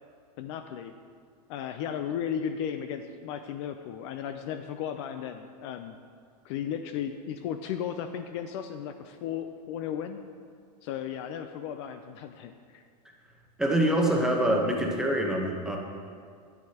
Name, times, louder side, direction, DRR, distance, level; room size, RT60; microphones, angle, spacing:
voice 1, 0.4-0.9 1.5-6.0 6.4-10.2 10.8-12.8, left 8 dB, 45° left, 8 dB, 0.4 m, -35 dB
voice 2, 13.6-15.8, right 1 dB, 5° right, 0 dB, 0.9 m, -25 dB
10.0 x 9.6 x 2.9 m, 2.2 s
supercardioid pair, 145°, 21 cm